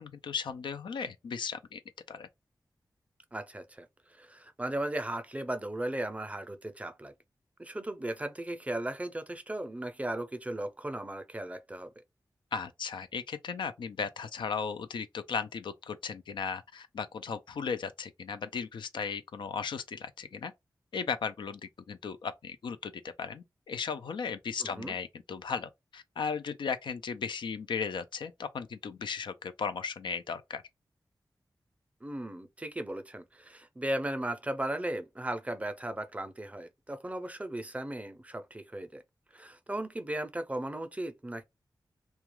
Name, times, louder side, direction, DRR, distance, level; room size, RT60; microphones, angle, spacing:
voice 1, 0.0-1.8 2.1-2.3 12.5-20.5 20.9-21.6 21.9-22.9 23.2-30.6, left 6 dB, 90° left, 0.4 m, -36 dB
voice 2, 3.3-7.1 7.6-11.9 24.6-24.9 32.0-39.0 39.3-41.4, right 1 dB, 15° right, 0.5 m, -36 dB
2.3 x 2.2 x 2.9 m
wide cardioid pair, 80°, 8 cm